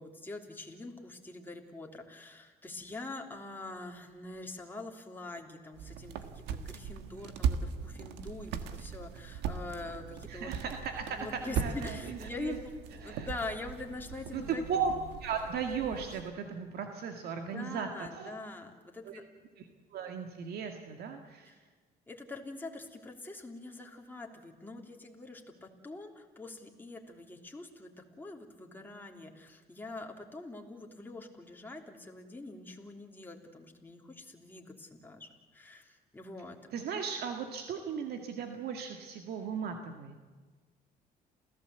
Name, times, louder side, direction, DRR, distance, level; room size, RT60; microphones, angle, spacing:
voice 1, 0.0-10.6 11.1-14.6 17.3-19.2 21.4-21.5 22.1-36.6, left 2 dB, 10° left, 1 dB, 3.1 m, -44 dB
sound 1, 5.7-16.3, right 7 dB, 90° right, 1.5 m, -39 dB
voice 2, 10.3-12.6 13.0-13.3 14.3-14.9 15.2-18.3 19.1-19.2 19.6-19.7 19.9-21.6 36.7-40.2, right 6 dB, 70° right, 4 dB, 2.0 m, -37 dB
28.0 x 16.0 x 8.1 m, 1.4 s
cardioid pair, 110°, 17 cm